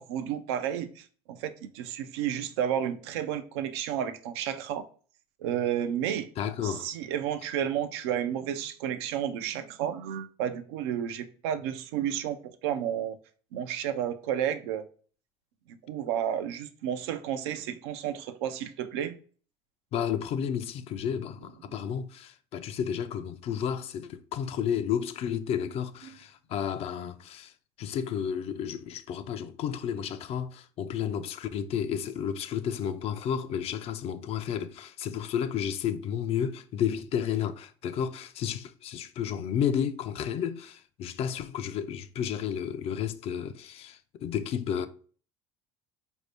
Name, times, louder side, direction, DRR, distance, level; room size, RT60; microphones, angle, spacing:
voice 1, 0.0-4.9 5.4-6.3 6.6-13.2 13.5-14.8 15.7-19.2 21.7-21.8, right 9 dB, 85° right, 0.4 m, -32 dB
voice 2, 6.4-6.9 19.9-27.5 27.8-44.9, left 8 dB, 50° left, 0.4 m, -32 dB
4.2 x 2.7 x 3.2 m
supercardioid pair, 100°, 13 cm